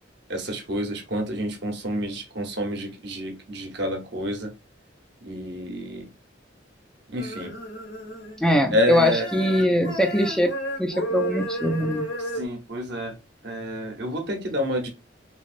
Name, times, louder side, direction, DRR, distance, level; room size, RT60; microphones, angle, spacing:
voice 1, 0.3-4.5 5.2-6.1 7.1-7.5 8.7-9.3 12.3-13.1 13.4-14.9, equal, 60° right, 4 dB, 0.9 m, -28 dB
sound 1, 7.2-8.6 8.9-12.4, right 1 dB, 85° left, 1.5 m, -32 dB
voice 2, 8.4-10.5 10.8-12.0, left 1 dB, 5° left, 4 dB, 0.3 m, -22 dB
3.0 x 2.8 x 2.5 m, 0.26 s
head